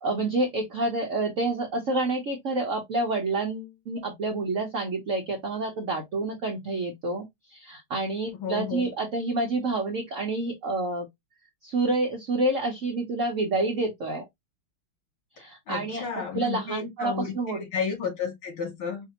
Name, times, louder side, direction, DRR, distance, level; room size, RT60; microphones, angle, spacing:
voice 1, 0.0-7.2 7.5-11.1 11.6-14.2 15.4-17.6, right 2 dB, 55° right, 0.9 m, -28 dB
voice 2, 8.4-8.9 15.4-19.1, left 6 dB, 90° left, 2.6 m, -32 dB
5.0 x 2.5 x 2.8 m
omnidirectional pair, 2.2 m